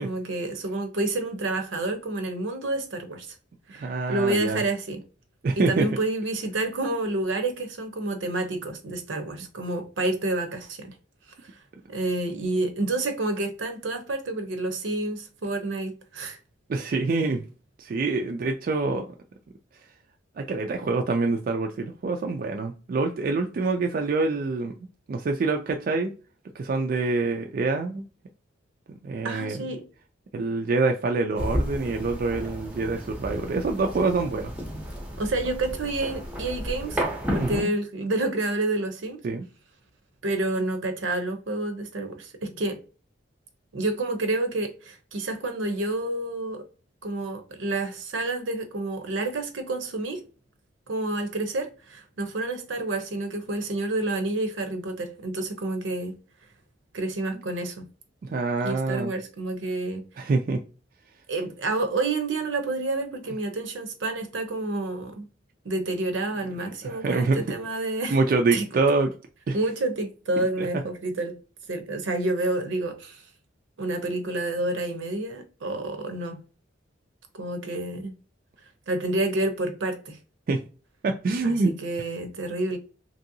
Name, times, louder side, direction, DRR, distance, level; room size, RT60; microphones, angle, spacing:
voice 1, 0.0-3.3 3.7-5.0 5.6-10.9 11.9-16.4 29.2-29.8 35.2-37.0 37.3-39.2 40.2-42.8 43.7-46.7 47.0-50.2 50.9-56.1 56.9-57.8 58.6-60.0 61.3-65.3 65.6-68.2 68.5-68.6 69.5-71.4 71.7-73.2 73.8-76.4 77.3-78.1 78.9-80.2 81.4-82.8, right 2 dB, 80° right, 0.7 m, -29 dB
voice 2, 3.8-4.6 5.4-5.9 16.7-17.4 17.8-19.1 20.4-24.7 25.1-26.1 26.6-28.0 29.0-29.6 30.3-34.5 37.4-37.7 39.2-39.5 58.2-59.1 60.2-60.6 66.8-67.4 68.1-69.1 69.5-69.6 70.6-70.7 80.5-80.6 81.0-81.7, right 3 dB, 45° right, 0.3 m, -25 dB
sound 1, 31.4-37.6, equal, 5° right, 0.6 m, -32 dB
2.9 x 2.7 x 2.6 m
head